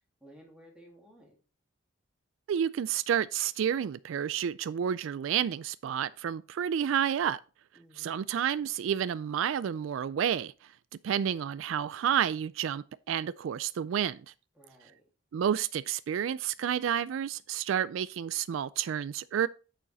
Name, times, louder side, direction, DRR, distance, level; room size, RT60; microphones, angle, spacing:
voice 1, 0.2-1.4 7.7-8.2 14.5-15.0, equal, 5° right, 2.2 m, -56 dB
voice 2, 2.5-7.4 8.0-10.5 11.0-14.2 15.3-19.5, right 9 dB, 80° right, 0.3 m, -30 dB
8.8 x 5.1 x 4.0 m
head